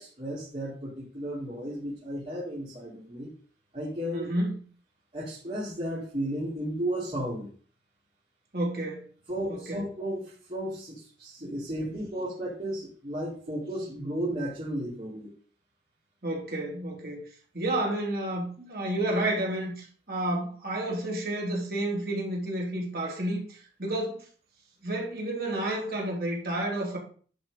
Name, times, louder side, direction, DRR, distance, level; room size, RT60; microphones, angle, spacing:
voice 1, 0.0-3.3 3.7-4.3 5.1-7.5 9.3-15.3, right 1 dB, 35° right, -8 dB, 3.6 m, -34 dB
voice 2, 4.1-4.6 8.5-9.0 9.5-9.8 16.2-17.2 17.5-24.2 24.8-27.0, right 1 dB, 55° right, -2 dB, 3.7 m, -30 dB
11.0 x 5.3 x 5.4 m, 0.44 s
head